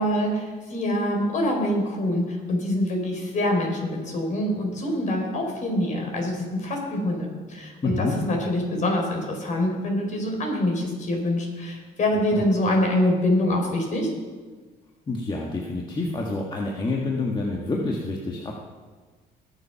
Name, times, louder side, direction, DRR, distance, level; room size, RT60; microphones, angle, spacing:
voice 1, 0.0-14.1, left 1 dB, 45° left, 1 dB, 4.4 m, -25 dB
voice 2, 7.8-8.1 12.3-12.4 15.1-18.5, left 2 dB, 25° left, -1 dB, 1.6 m, -28 dB
20.5 x 7.4 x 5.8 m, 1.4 s
cardioid pair, 110°, 17 cm